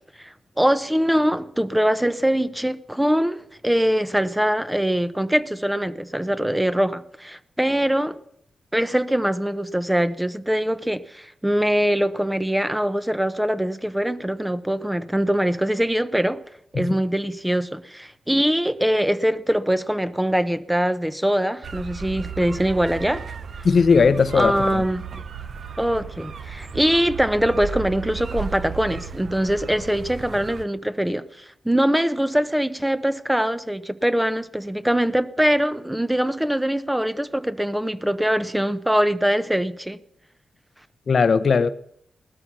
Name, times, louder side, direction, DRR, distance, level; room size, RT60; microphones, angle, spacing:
voice 1, 0.2-8.2 8.7-16.4 16.7-23.2 24.3-25.0 25.8-40.0, equal, 5° right, 0.7 m, -23 dB
sound 1, 21.6-30.6, right 6 dB, 60° right, 0.8 m, -35 dB
voice 2, 23.6-24.8 41.1-41.7, left 5 dB, 55° left, 0.7 m, -18 dB
18.0 x 12.5 x 6.0 m
wide cardioid pair, 110°, 0 cm